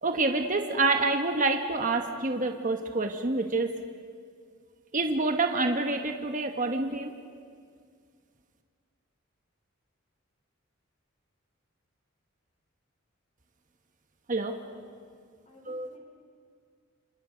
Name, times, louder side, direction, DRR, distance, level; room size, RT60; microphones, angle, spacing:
voice 1, 0.0-3.7 4.9-7.1 14.3-14.5 15.6-15.9, right 3 dB, 40° right, 5 dB, 1.3 m, -27 dB
voice 2, 14.4-14.8 15.5-16.0, left 3 dB, 35° left, 0 dB, 4.3 m, -56 dB
28.0 x 27.0 x 5.1 m, 2.1 s
head